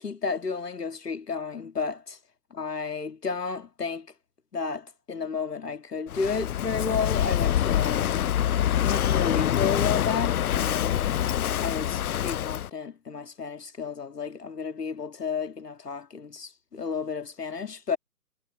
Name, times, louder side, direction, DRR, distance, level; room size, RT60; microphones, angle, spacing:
voice 1, 0.0-2.2 2.6-4.1 4.5-8.2 8.8-11.0 11.6-18.0, left 5 dB, 85° left, 1.8 m, -32 dB
Walk footsteps / Wind / Waves surf, 6.1-12.7, left 11 dB, 70° left, 0.5 m, -25 dB
figure-of-eight pair, 145°, 46 cm